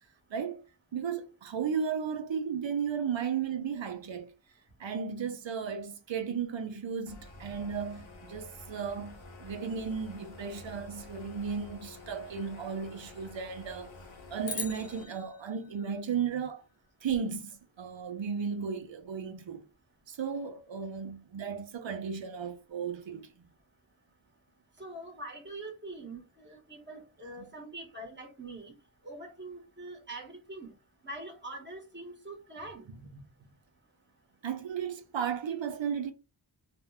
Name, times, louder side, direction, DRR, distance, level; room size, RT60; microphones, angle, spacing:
voice 1, 0.3-0.6 0.9-4.3 4.8-13.9 14.3-16.6 17.0-19.6 20.1-23.4 34.4-36.1, right 6 dB, 70° right, 0.7 m, -35 dB
sound 1, 7.1-15.0, left 2 dB, 75° left, 0.9 m, -50 dB
sound 2, 14.5-16.9, left 4 dB, 45° left, 0.7 m, -42 dB
voice 2, 24.8-28.7 29.0-30.7 31.0-32.8, right 2 dB, 25° right, 1.1 m, -44 dB
2.6 x 2.1 x 3.3 m
wide cardioid pair, 70°, 47 cm